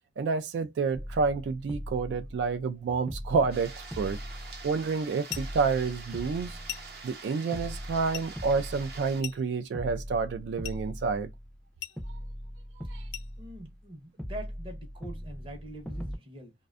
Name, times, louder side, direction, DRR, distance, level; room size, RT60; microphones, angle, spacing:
voice 1, 0.2-4.2 4.6-6.6 7.0-11.3 12.9-13.1, right 5 dB, 85° right, 0.3 m, -29 dB
sound 1, 0.9-2.8 3.1-5.0 5.3-7.2 7.5-9.4 9.7-11.6 12.0-13.9 14.2-16.2, equal, 5° left, 0.4 m, -40 dB
sound 2, 3.5-9.2, right 4 dB, 60° right, 0.7 m, -46 dB
sound 3, 5.3-5.6 6.7-7.0 8.1-8.4 9.2-9.6 10.6-10.9 11.8-12.1 13.1-13.4, left 13 dB, 85° left, 0.3 m, -40 dB
voice 2, 13.4-16.5, right 1 dB, 30° right, 0.7 m, -44 dB
2.4 x 2.2 x 2.3 m
head